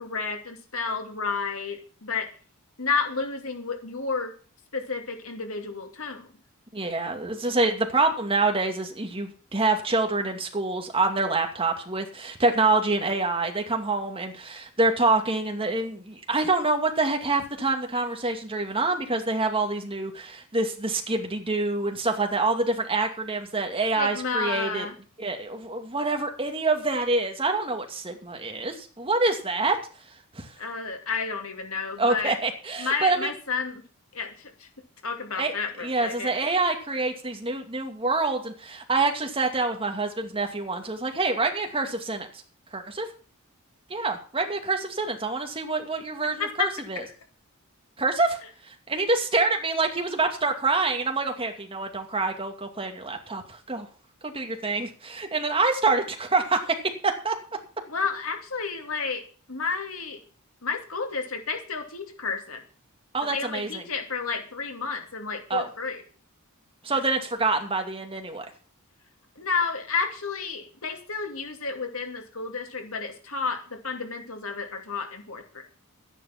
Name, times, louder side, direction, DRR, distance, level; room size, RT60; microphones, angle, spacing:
voice 1, 0.0-2.3 2.8-4.3 4.7-6.3 24.0-24.9 30.6-32.4 32.8-33.8 34.1-34.7 35.0-36.5 46.4-46.7 57.9-59.2 59.5-60.2 60.6-62.6 63.3-66.0 69.4-75.6, left 5 dB, 65° left, 4 dB, 2.6 m, -31 dB
voice 2, 6.7-24.9 25.2-29.8 30.3-30.5 32.0-33.3 35.4-35.5 35.8-42.3 42.7-43.1 43.9-47.0 48.0-48.4 48.7-53.9 54.2-57.4 63.1-63.8 65.5-65.7 66.8-68.5, right 3 dB, 25° right, 4 dB, 2.3 m, -26 dB
13.0 x 10.5 x 5.9 m, 0.40 s
head